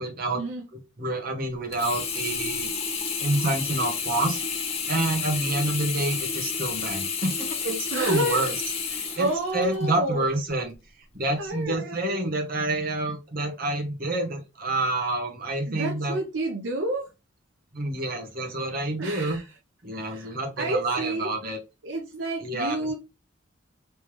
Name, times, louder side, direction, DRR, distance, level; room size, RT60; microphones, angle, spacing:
voice 1, 0.0-0.4 0.7-2.7 3.2-4.4 4.9-8.5 8.9-9.3 9.5-10.7 11.1-16.2 17.7-19.4 19.8-21.6 22.4-22.9, right 2 dB, 50° right, 1.0 m, -28 dB
Sink (filling or washing), 1.7-10.0 10.5-10.6, left 5 dB, 30° left, 0.7 m, -30 dB
voice 2, 7.9-8.4 9.2-10.3 11.4-12.2 15.7-17.1 19.0-19.4 19.9-21.3 21.8-22.9, right 1 dB, 70° right, 0.6 m, -30 dB
3.3 x 3.1 x 3.0 m
head